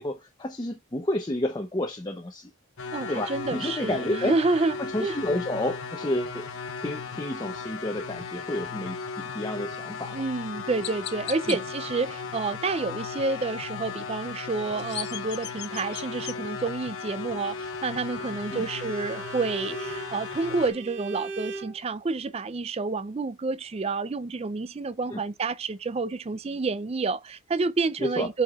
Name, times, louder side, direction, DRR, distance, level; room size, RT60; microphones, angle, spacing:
voice 1, 0.0-2.5 3.1-4.4 4.8-6.5 6.8-10.2 11.5-11.6 18.5-18.7 25.1-25.2 28.0-28.3, left 1 dB, 20° left, 0.7 m, -30 dB
sound 1, 2.8-20.7, left 5 dB, 70° left, 1.2 m, -36 dB
voice 2, 2.9-5.2 10.1-28.4, right 3 dB, 25° right, 0.4 m, -29 dB
Chirp tweet, 9.9-10.1 10.8-11.6 14.5-16.4, left 12 dB, 50° left, 0.6 m, -37 dB
Bowed string instrument, 18.1-21.8, right 4 dB, 50° right, 2.7 m, -39 dB
8.8 x 4.6 x 2.4 m
head